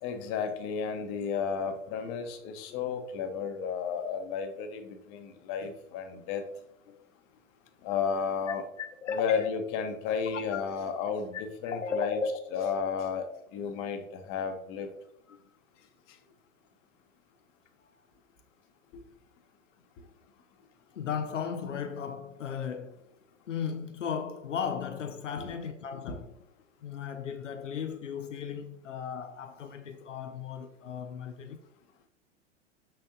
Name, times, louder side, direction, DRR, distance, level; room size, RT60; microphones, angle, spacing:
voice 1, 0.0-6.4 7.8-8.6 9.1-11.4 11.6-12.2 12.5-14.9 25.4-25.5, left 6 dB, 35° left, 0.9 m, -33 dB
voice 2, 6.1-6.6 6.9-7.0 8.8-9.5 10.3-10.6 11.3-12.8 15.3-15.4 21.0-23.0 23.5-26.4 26.8-31.6, left 6 dB, 75° left, 0.6 m, -36 dB
6.1 x 5.9 x 2.7 m
figure-of-eight pair, 95°, 37 cm